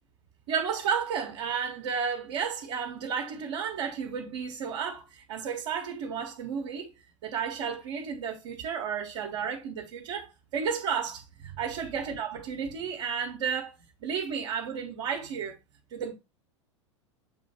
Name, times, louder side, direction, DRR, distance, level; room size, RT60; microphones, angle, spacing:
voice 1, 0.5-6.9 7.2-15.6 15.9-16.1, right 7 dB, 55° right, 1.3 m, -32 dB
7.7 x 3.1 x 4.3 m
figure-of-eight pair, 85°, 16 cm